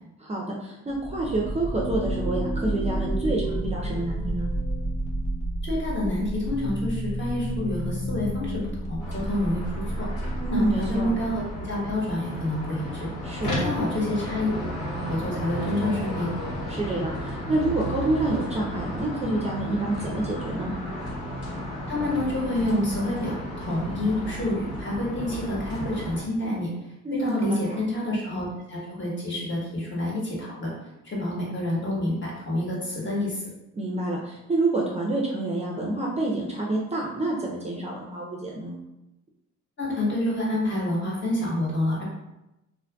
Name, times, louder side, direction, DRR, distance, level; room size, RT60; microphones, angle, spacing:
voice 1, 0.2-4.5 10.4-11.1 13.2-13.7 16.7-20.7 27.0-27.8 33.8-38.7, right 2 dB, 20° right, -3 dB, 0.4 m, -28 dB
sound 1, 0.9-11.5, right 1 dB, 20° left, 0.6 m, -30 dB
voice 2, 5.6-8.5 8.9-9.6 10.0-10.1 10.5-13.1 13.5-14.5 14.9-16.3 21.9-26.7 27.1-30.7 31.0-33.4 39.8-42.0, left 1 dB, 40° left, -5 dB, 1.2 m, -28 dB
sound 2, 9.0-26.2, equal, 75° left, 1.1 m, -33 dB
2.7 x 2.5 x 2.2 m, 0.92 s
cardioid pair, 90°, 30 cm